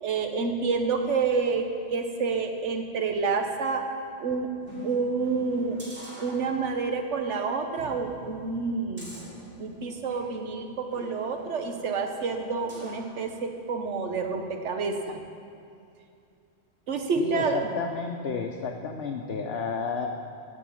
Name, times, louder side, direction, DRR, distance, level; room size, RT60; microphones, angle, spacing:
voice 1, 0.0-3.8 4.2-4.5 4.8-5.8 6.2-9.1 9.6-15.2 16.9-17.6, right 4 dB, 85° right, 5 dB, 1.3 m, -28 dB
sound 1, 4.6-6.9 7.2-7.4 7.8-10.3 10.9-13.1 13.6-13.7, right 1 dB, 55° right, 3.7 m, -46 dB
voice 2, 17.2-20.1, left 5 dB, 60° left, 1 dB, 0.9 m, -31 dB
14.5 x 5.0 x 8.4 m, 2.5 s
omnidirectional pair, 1.2 m